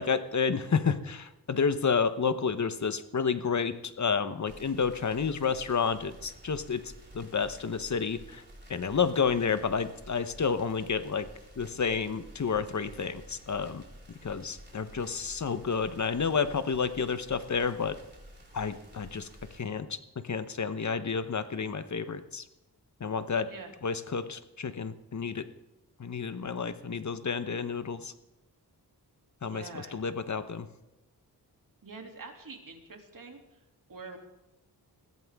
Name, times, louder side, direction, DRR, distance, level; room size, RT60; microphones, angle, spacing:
voice 1, 0.0-8.4 8.7-11.3 11.6-13.8 14.2-18.0 18.5-22.4 23.0-23.5 23.8-25.5 26.0-28.1 29.4-30.7, left 5 dB, 45° left, 11 dB, 1.0 m, -30 dB
sound 1, 4.5-19.6, equal, 25° right, 4.7 m, -51 dB
voice 2, 29.4-29.9 31.8-33.4 33.9-34.2, right 4 dB, 55° right, 2 dB, 2.8 m, -45 dB
21.0 x 15.0 x 3.6 m, 0.95 s
cardioid pair, 70°, 40 cm